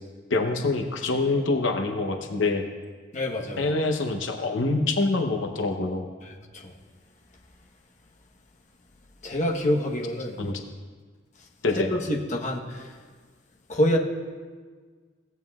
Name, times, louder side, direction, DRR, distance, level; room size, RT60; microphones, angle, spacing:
voice 1, 0.3-2.6 3.6-6.0 10.4-10.6 11.6-11.9, left 3 dB, 85° left, 4 dB, 0.8 m, -25 dB
voice 2, 3.1-3.7 9.2-10.4 11.9-12.8 13.7-14.0, equal, 40° left, -1 dB, 1.0 m, -26 dB
16.0 x 9.2 x 2.3 m, 1.5 s
head